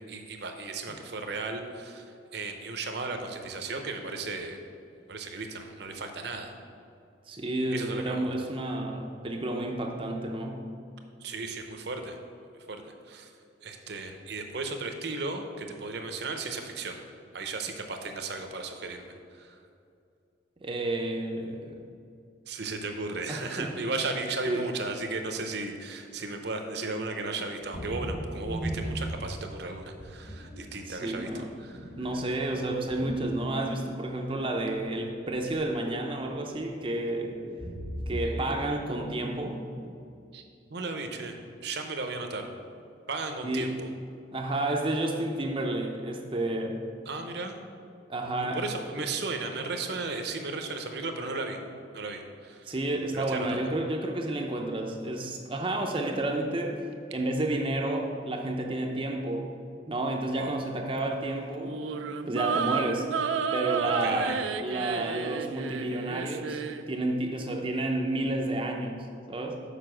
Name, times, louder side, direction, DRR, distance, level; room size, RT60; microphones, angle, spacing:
voice 1, 0.1-4.6 5.1-6.5 7.7-8.3 11.2-12.2 12.7-13.3 13.6-17.0 17.3-19.1 19.3-19.6 22.5-31.3 31.6-31.9 38.2-38.7 40.3-40.4 40.7-41.3 41.6-42.5 43.1-43.7 47.1-47.6 48.4-51.6 51.9-52.7 53.1-53.6 60.3-60.6 63.8-64.4, right 3 dB, 60° right, 5 dB, 0.8 m, -35 dB
voice 2, 7.3-10.6 20.6-21.8 23.3-23.7 24.4-24.6 30.9-31.5 32.0-37.4 38.1-39.7 43.4-43.7 44.3-46.8 48.1-48.6 49.0-49.1 52.7-56.8 57.1-59.5 59.9-61.8 62.3-63.1 63.5-69.6, right 1 dB, 30° right, 2 dB, 0.5 m, -31 dB
sound 1, 27.6-29.5 30.0-30.6 31.0-34.2 34.6-36.1 36.4-36.7 37.3-38.5 38.8-39.1, equal, 30° left, 0.9 m, -38 dB
sound 2, 61.6-66.8, right 6 dB, 90° right, 0.4 m, -31 dB
6.8 x 5.1 x 6.2 m, 2.5 s
head